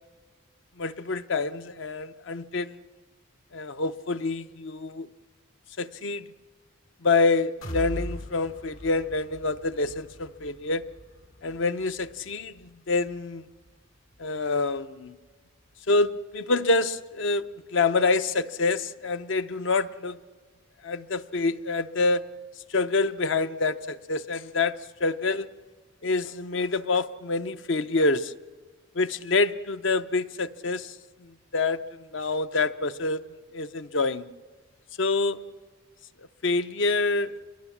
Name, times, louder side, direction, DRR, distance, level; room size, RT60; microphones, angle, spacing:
voice 1, 0.8-2.8 3.5-5.1 5.8-6.2 7.0-10.8 11.4-13.4 14.2-15.1 15.9-17.4 17.7-20.2 20.8-22.2 22.7-25.5 26.0-28.3 28.9-30.9 31.2-33.2 33.5-34.3 35.0-35.4 36.4-37.3, left 3 dB, 60° left, 12 dB, 0.6 m, -26 dB
sound 1, 7.6-15.4 15.8-15.9 16.3-16.4, equal, 80° left, 2.5 m, -42 dB
25.0 x 22.0 x 7.2 m, 1.4 s
head